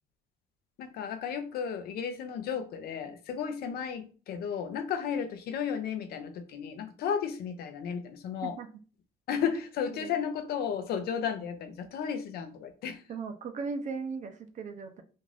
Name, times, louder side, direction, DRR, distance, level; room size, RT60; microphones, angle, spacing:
voice 1, 0.8-8.6 9.3-13.0, left 7 dB, 65° left, 0.5 m, -34 dB
voice 2, 13.1-15.0, right 4 dB, 45° right, 0.5 m, -37 dB
2.6 x 2.4 x 3.2 m
cardioid pair, 110°, 17 cm